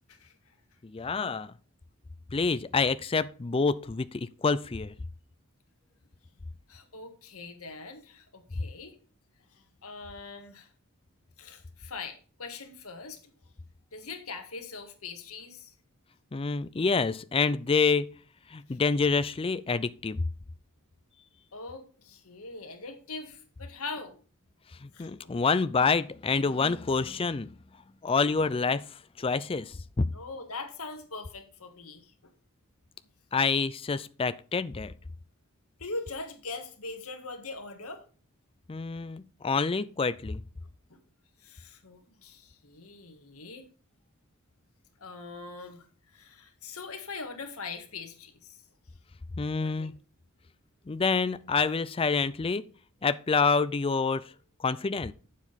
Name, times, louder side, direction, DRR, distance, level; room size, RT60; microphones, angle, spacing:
voice 1, 0.1-0.5 6.7-8.9 9.5-10.7 11.4-13.3 13.9-15.7 18.7-18.8 21.5-24.1 24.9-25.3 30.1-32.3 35.8-38.0 41.4-43.7 45.0-45.9 46.1-48.6 49.5-49.9, left 3 dB, 80° left, 1.7 m, -42 dB
voice 2, 0.8-1.5 2.3-4.9 16.3-18.1 18.5-20.2 24.8-27.5 28.0-28.8 29.2-30.0 33.3-34.9 38.7-40.4 49.4-49.9 50.9-52.6 53.0-54.2 54.6-55.1, left 4 dB, 25° left, 0.4 m, -27 dB
8.7 x 7.4 x 4.1 m
head